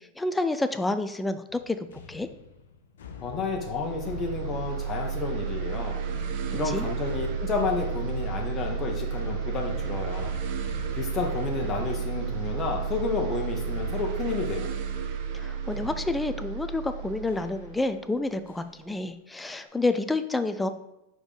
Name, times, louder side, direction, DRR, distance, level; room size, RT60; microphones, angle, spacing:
voice 1, 0.0-2.3 6.6-6.8 15.3-20.7, left 2 dB, 10° left, 10 dB, 0.4 m, -29 dB
sound 1, 1.5-18.0 18.5-18.8 19.4-19.9, left 5 dB, 80° left, 0.7 m, -45 dB
voice 2, 3.2-6.0 6.5-10.3 10.9-14.7, left 4 dB, 30° left, 1 dB, 1.2 m, -31 dB
sound 2, 3.2-18.7, right 7 dB, 55° right, 0.7 m, -32 dB
5.0 x 3.8 x 5.0 m, 0.92 s
hypercardioid pair, 115°, 0 cm